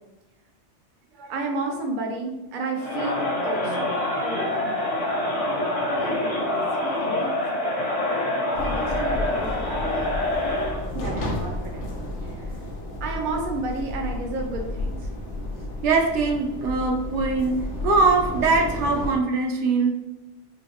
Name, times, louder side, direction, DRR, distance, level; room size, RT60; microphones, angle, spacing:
voice 1, 1.3-5.6 6.0-8.1 8.5-10.1 10.9-11.9 12.2-12.5 13.0-15.1, right 2 dB, 50° right, 2 dB, 0.6 m, -33 dB
Crowd, 2.8-10.9, left 1 dB, 40° left, 0.6 m, -26 dB
filsoe windy shed, 8.5-19.2, left 1 dB, 90° left, 1.0 m, -32 dB
voice 2, 15.8-20.1, right 3 dB, 90° right, 2 dB, 0.9 m, -22 dB
3.9 x 2.1 x 2.8 m, 1.0 s
omnidirectional pair, 1.2 m